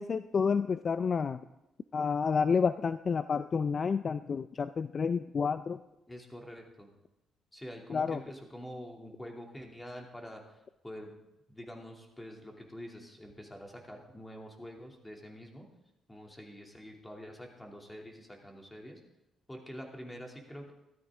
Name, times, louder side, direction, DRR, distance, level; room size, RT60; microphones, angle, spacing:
voice 1, 0.0-1.4 1.9-5.8 7.9-8.2, left 5 dB, 45° left, 12 dB, 0.4 m, -29 dB
voice 2, 6.1-6.9 7.5-11.2 11.5-15.7 16.1-19.0 19.5-20.7, equal, 10° left, 1 dB, 2.8 m, -46 dB
14.0 x 13.0 x 3.7 m, 0.92 s
cardioid pair, 90°, 0 cm